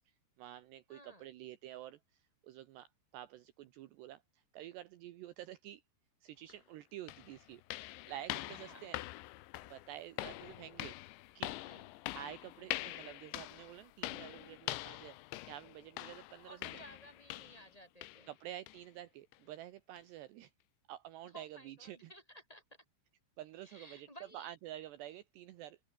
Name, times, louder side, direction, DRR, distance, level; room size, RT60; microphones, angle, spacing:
voice 1, 0.4-5.8 6.2-7.6 8.1-9.0 9.6-11.0 11.4-11.6 12.1-15.2 15.5-16.7 18.3-20.5 20.9-22.1 23.4-24.1 24.3-25.8, right 13 dB, 75° right, 3.0 m, -49 dB
voice 2, 0.9-1.3 8.6-8.9 11.6-11.9 16.4-18.3 21.2-22.8 23.6-24.5, equal, 5° left, 6.9 m, -56 dB
sound 1, 6.5-6.6 7.1-17.7 18.0-18.3 18.7-18.8 19.3-19.4 20.0-20.1, left 18 dB, 80° left, 3.1 m, -44 dB
open air
omnidirectional pair, 5.4 m